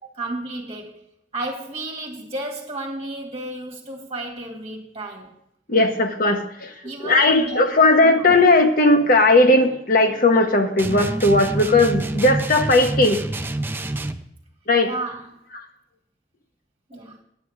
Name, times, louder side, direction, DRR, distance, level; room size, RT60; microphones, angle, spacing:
voice 1, 0.0-1.0 1.3-5.3 6.8-7.6 8.0-8.3 14.8-15.4 16.9-17.2, right 2 dB, 35° right, 0 dB, 2.2 m, -32 dB
voice 2, 5.7-6.7 7.0-13.2 14.7-14.9, left 2 dB, 50° left, 6 dB, 1.0 m, -17 dB
sound 1, 10.8-14.3, right 2 dB, 10° right, 0.4 m, -27 dB
9.4 x 8.3 x 4.8 m, 0.78 s
head